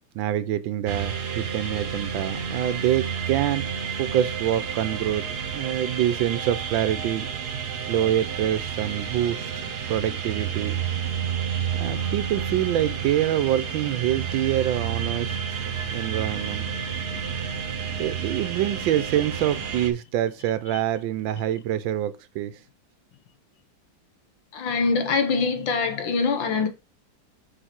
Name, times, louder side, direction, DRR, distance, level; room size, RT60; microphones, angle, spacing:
voice 1, 0.1-3.7 4.0-5.3 5.5-7.3 7.9-9.5 9.9-10.8 11.7-15.6 15.9-16.7 18.0-22.5, right 12 dB, 85° right, 1.4 m, -26 dB
sound 1, 0.9-19.9, right 7 dB, 60° right, 1.6 m, -30 dB
voice 2, 24.5-26.7, left 4 dB, 80° left, 1.9 m, -24 dB
6.8 x 4.8 x 4.4 m
omnidirectional pair, 2.1 m